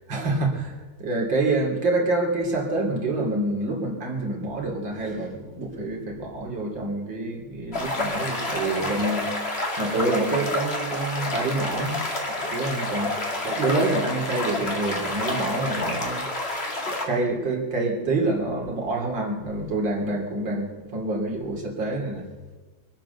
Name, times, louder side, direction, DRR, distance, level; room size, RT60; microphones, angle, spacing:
voice 1, 0.1-9.3 9.8-13.1 13.4-16.2 16.7-22.2, right 2 dB, 60° right, 0 dB, 3.6 m, -27 dB
sound 1, 7.7-17.0, left 2 dB, 30° left, 2.5 m, -29 dB
24.0 x 8.9 x 6.7 m, 1.3 s
omnidirectional pair, 2.3 m